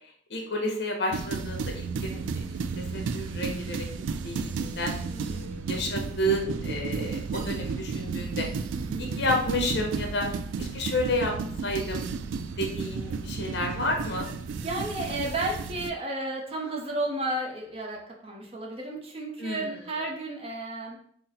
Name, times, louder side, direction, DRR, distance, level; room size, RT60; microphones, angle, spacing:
voice 1, 0.3-2.4 2.8-3.9 4.2-8.5 9.0-10.3 10.6-11.3 11.6-12.1 12.6-14.3 19.4-19.7, left 1 dB, 65° left, 2 dB, 0.9 m, -30 dB
sound 1, 1.1-15.9, right 5 dB, 85° right, 0.3 m, -33 dB
voice 2, 5.1-5.5 8.8-9.0 14.6-21.0, right 2 dB, 30° right, 0 dB, 0.6 m, -33 dB
3.9 x 2.1 x 4.0 m, 0.62 s
head